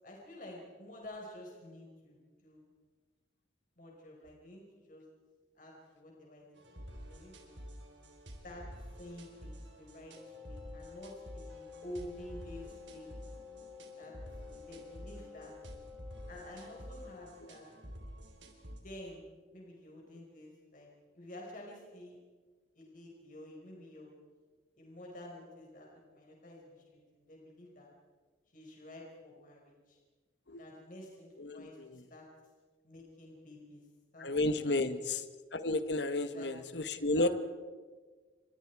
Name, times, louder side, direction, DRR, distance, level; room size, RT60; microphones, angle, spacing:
voice 1, 0.0-2.7 3.8-5.0 5.5-7.6 8.4-8.7 9.0-13.1 14.0-14.1 14.4-15.5 16.3-17.7 18.7-19.2 19.5-20.9 21.1-22.2 22.7-24.1 24.7-27.9 28.5-30.0 30.6-32.3 32.8-33.9 34.1-34.3 34.7-35.0 36.2-37.3, left 1 dB, 45° left, -1 dB, 5.0 m, -50 dB
sound 1, 6.5-18.8, equal, 75° right, 4.2 m, -50 dB
Wind instrument woodwind instrument, 10.1-17.4, left 7 dB, ahead, 3.5 m, -52 dB
voice 2, 31.4-32.0 34.2-35.2 35.5-37.3, left 2 dB, 65° left, 11 dB, 1.3 m, -32 dB
30.0 x 25.0 x 4.7 m, 1.4 s
head